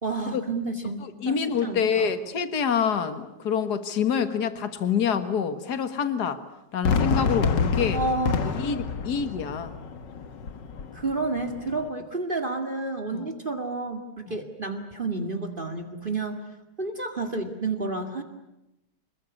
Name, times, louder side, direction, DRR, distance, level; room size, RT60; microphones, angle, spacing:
voice 1, 0.0-2.1 7.9-8.7 10.9-16.4 16.8-18.2, right 3 dB, 30° right, 7 dB, 2.3 m, -30 dB
voice 2, 1.0-6.4 6.7-8.0 8.4-9.8 13.1-13.3, left 7 dB, 65° left, 11 dB, 2.1 m, -26 dB
Fireworks, 6.8-11.9, left 5 dB, 85° left, 2.1 m, -28 dB
26.0 x 22.0 x 9.7 m, 0.89 s
omnidirectional pair, 1.9 m